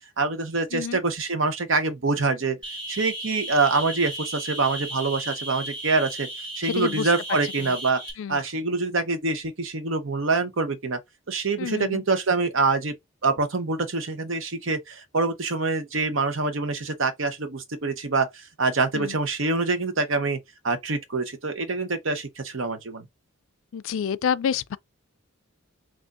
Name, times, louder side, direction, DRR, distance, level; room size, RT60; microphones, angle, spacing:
voice 1, 0.2-2.6 2.9-6.3 6.6-8.0 8.3-11.0 11.3-12.9 13.2-20.4 20.6-23.0, right 3 dB, 65° right, 0.8 m, -25 dB
voice 2, 0.7-1.0 6.6-7.1 7.6-7.8 8.2-8.4 11.6-12.0 18.9-19.2 23.7-24.8, left 7 dB, 65° left, 0.3 m, -28 dB
sound 1, 2.6-8.1, right 1 dB, 25° right, 1.7 m, -35 dB
6.1 x 2.5 x 2.5 m
head